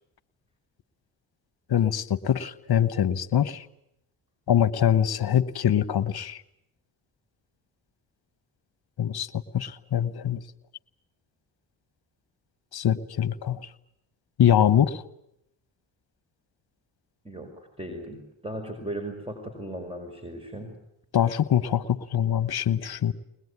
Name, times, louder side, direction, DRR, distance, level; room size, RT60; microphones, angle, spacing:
voice 1, 1.7-3.6 4.5-6.4 9.0-9.3 9.5-10.4 12.7-13.6 14.4-15.0 21.1-23.1, left 9 dB, 55° left, 16 dB, 1.3 m, -23 dB
voice 2, 17.8-20.7, right 1 dB, 10° right, 4 dB, 5.3 m, -37 dB
22.0 x 20.5 x 9.8 m, 0.80 s
supercardioid pair, 50°, 45 cm